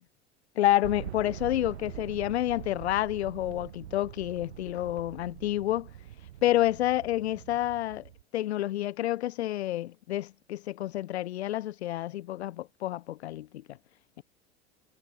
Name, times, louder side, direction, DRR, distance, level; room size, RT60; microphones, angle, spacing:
voice 1, 0.6-5.9 6.4-8.0 8.3-13.8, left 14 dB, 75° left, 0.5 m, -29 dB
sound 1, 0.8-8.2, right 12 dB, 75° right, 0.7 m, -44 dB
figure-of-eight pair, 80°, 33 cm